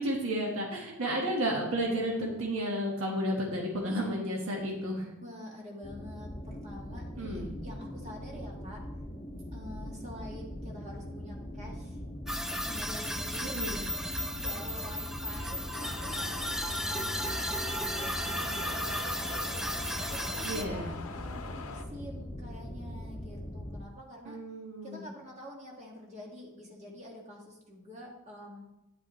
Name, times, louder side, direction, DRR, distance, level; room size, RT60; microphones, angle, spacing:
voice 1, 0.0-5.1 7.2-7.5 13.4-13.8 20.4-20.9 24.2-25.0, equal, 70° right, -1 dB, 1.4 m, -32 dB
voice 2, 5.2-8.8 9.5-12.0 12.7-13.5 14.4-19.6 20.1-24.4 24.8-28.7, equal, 30° right, -1 dB, 1.7 m, -47 dB
sound 1, 5.8-23.8, left 1 dB, 20° left, 1.0 m, -41 dB
sound 2, 12.3-20.6, equal, ahead, 0.3 m, -35 dB
sound 3, 15.7-21.8, left 4 dB, 75° left, 0.7 m, -43 dB
9.2 x 8.6 x 3.0 m, 0.89 s
head